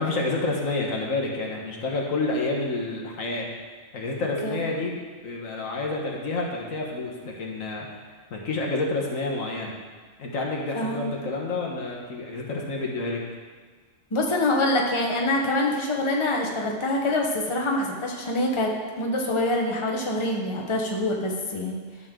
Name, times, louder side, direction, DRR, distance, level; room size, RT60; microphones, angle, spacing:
voice 1, 0.0-3.5 3.9-5.0 5.2-7.9 8.3-9.7 10.2-13.2, left 2 dB, 90° left, -1 dB, 1.8 m, -29 dB
voice 2, 10.7-11.1 14.1-21.8, left 1 dB, 25° left, 0 dB, 1.0 m, -25 dB
12.0 x 6.9 x 3.8 m, 1.5 s
omnidirectional pair, 1.4 m